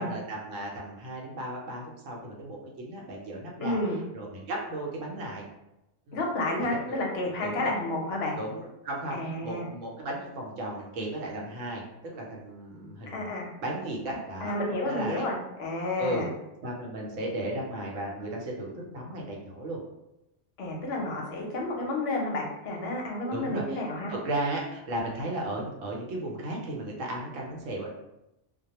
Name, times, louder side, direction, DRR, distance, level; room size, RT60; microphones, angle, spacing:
voice 1, 0.0-3.8 4.1-5.4 6.1-6.2 6.9-7.0 7.4-7.7 8.4-13.3 13.6-14.6 14.9-15.2 16.0-16.3 16.6-19.8 23.3-23.8 24.1-27.9, right 1 dB, 80° right, -2 dB, 1.0 m, -35 dB
voice 2, 3.6-4.0 6.1-8.4 9.1-9.7 13.1-13.5 14.1-16.3 20.6-24.1, left 2 dB, 65° left, -1 dB, 0.8 m, -31 dB
2.2 x 2.1 x 2.8 m, 0.90 s
omnidirectional pair, 1.3 m